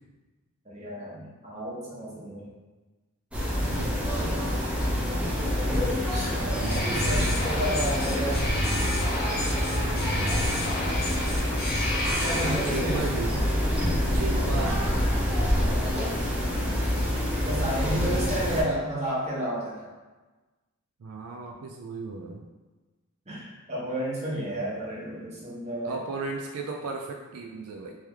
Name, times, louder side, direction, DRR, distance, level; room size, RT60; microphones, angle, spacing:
voice 1, 0.6-2.5 6.1-8.6 12.2-13.1 14.3-14.5 15.6-16.2 17.4-19.8 23.3-26.0, right 1 dB, 30° right, -7 dB, 1.1 m, -32 dB
sound 1, 3.3-18.6, equal, 5° right, 0.6 m, -27 dB
voice 2, 3.6-4.0 6.5-7.4 8.0-8.1 9.7-10.2 12.4-13.6 14.1-14.9 17.8-18.2 21.0-22.5 25.8-28.0, right 3 dB, 85° right, 1 dB, 0.4 m, -35 dB
sound 2, 6.5-13.0, left 1 dB, 45° left, 0.9 m, -31 dB
3.2 x 3.0 x 3.4 m, 1.2 s
head